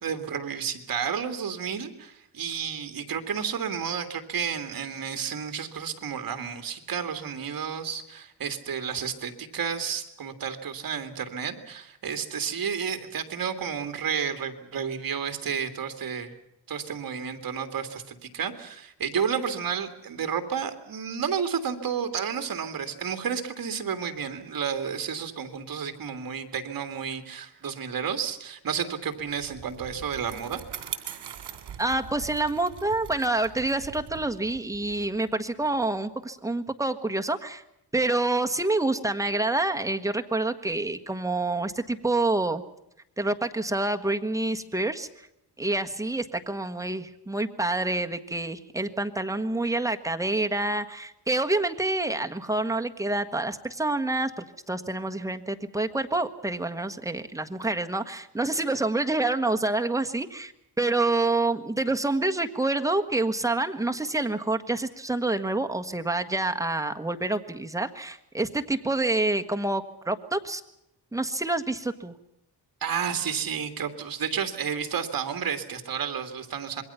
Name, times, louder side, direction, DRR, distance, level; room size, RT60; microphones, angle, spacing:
voice 1, 0.0-16.3 16.7-30.6 72.8-76.8, right 7 dB, 55° right, 8 dB, 2.5 m, -31 dB
Bicycle, 29.1-35.8, right 8 dB, 75° right, 2.9 m, -42 dB
voice 2, 31.8-37.6 37.9-42.6 43.2-45.1 45.6-60.5 60.8-70.6 71.1-72.1, right 2 dB, 10° right, 5 dB, 1.4 m, -27 dB
26.5 x 22.0 x 5.7 m, 0.82 s
wide cardioid pair, 130°, 40 cm